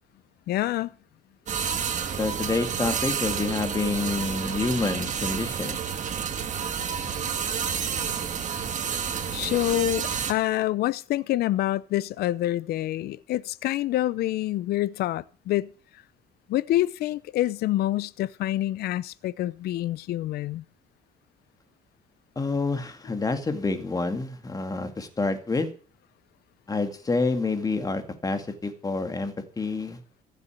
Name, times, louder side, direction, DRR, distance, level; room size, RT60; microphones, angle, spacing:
voice 1, 0.5-0.9 9.3-15.7 16.5-20.6, left 15 dB, 70° left, 0.6 m, -27 dB
sound 1, 1.5-10.3, right 7 dB, 45° right, 1.8 m, -30 dB
voice 2, 2.2-5.8 22.4-25.7 26.7-30.0, left 3 dB, 20° left, 2.2 m, -28 dB
15.0 x 7.1 x 8.3 m
cardioid pair, 110°, 17 cm